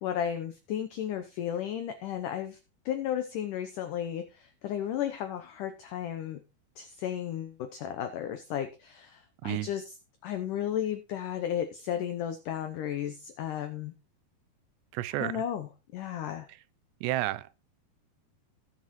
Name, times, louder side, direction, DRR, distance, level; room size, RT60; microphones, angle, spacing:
voice 1, 0.0-2.6 2.9-6.4 6.8-9.9 10.2-13.9 15.2-16.5, left 10 dB, 85° left, 1.8 m, -34 dB
voice 2, 14.9-15.4 17.0-17.5, right 16 dB, 90° right, 2.8 m, -31 dB
18.5 x 6.6 x 3.1 m
omnidirectional pair, 4.8 m